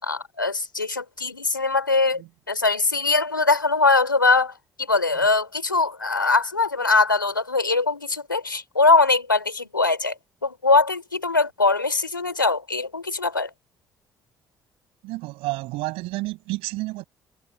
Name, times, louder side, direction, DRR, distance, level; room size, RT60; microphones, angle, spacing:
voice 1, 0.0-2.2 2.5-4.5 4.9-10.1 10.4-13.5, left 3 dB, 90° left, 3.1 m, -21 dB
voice 2, 15.0-17.0, right 21 dB, 65° right, 8.0 m, -30 dB
figure-of-eight pair, 45°, 11 cm